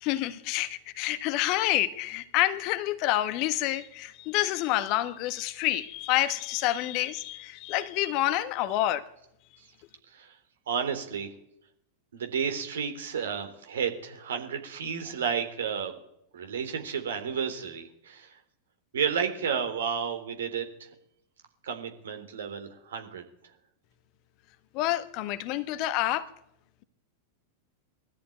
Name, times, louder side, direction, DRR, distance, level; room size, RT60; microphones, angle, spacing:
voice 1, 0.0-9.1 24.7-26.3, left 15 dB, 40° left, 1.4 m, -28 dB
voice 2, 10.7-11.3 12.1-15.9 16.3-18.4 18.9-20.7 21.6-23.2, right 7 dB, 65° right, 3.5 m, -32 dB
21.0 x 13.5 x 9.3 m
figure-of-eight pair, 90°, 0 cm